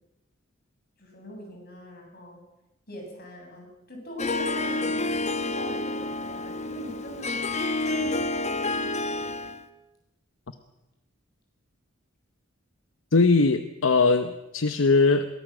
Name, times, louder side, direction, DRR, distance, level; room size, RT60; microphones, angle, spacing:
voice 1, 1.0-2.4 2.9-7.4 7.8-9.3, equal, 50° left, 2 dB, 7.6 m, -41 dB
Harp, 4.2-9.7, left 2 dB, 35° left, 1.1 m, -29 dB
voice 2, 13.1-15.3, left 3 dB, 75° left, 10 dB, 1.0 m, -20 dB
22.0 x 18.0 x 7.6 m, 0.93 s
head